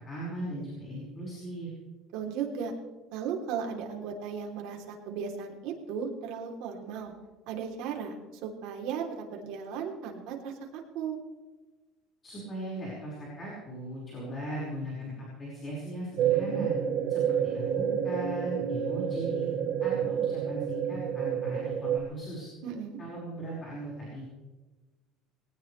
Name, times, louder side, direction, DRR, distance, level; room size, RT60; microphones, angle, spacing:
voice 1, 0.0-1.7 12.2-16.7 17.1-19.5 19.8-22.5 23.0-24.2, right 1 dB, 20° left, -5 dB, 5.3 m, -38 dB
voice 2, 2.1-2.7 3.1-7.1 7.5-8.1 8.4-10.5 10.9-11.2 22.6-23.0, right 7 dB, 65° right, 1 dB, 3.3 m, -36 dB
sound 1, 16.2-22.0, right 8 dB, 50° right, 1.3 m, -29 dB
21.0 x 18.5 x 3.3 m, 1.2 s
cardioid pair, 170°, 0 cm